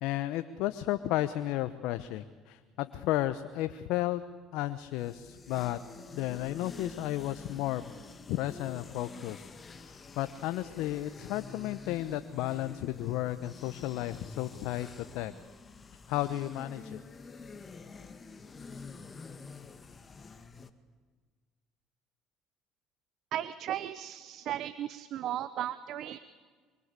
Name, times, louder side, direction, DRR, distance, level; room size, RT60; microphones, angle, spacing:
voice 1, 0.0-4.2 4.5-5.8 6.1-7.8 8.3-9.5 9.8-14.9 15.1-15.3 16.1-17.0, left 15 dB, 75° left, 11 dB, 1.0 m, -33 dB
sound 1, 4.8-20.7, left 4 dB, 30° left, 2.0 m, -48 dB
voice 2, 23.3-26.2, right 11 dB, 60° right, 14 dB, 1.0 m, -36 dB
24.5 x 24.5 x 8.3 m, 1.5 s
supercardioid pair, 75°, 0 cm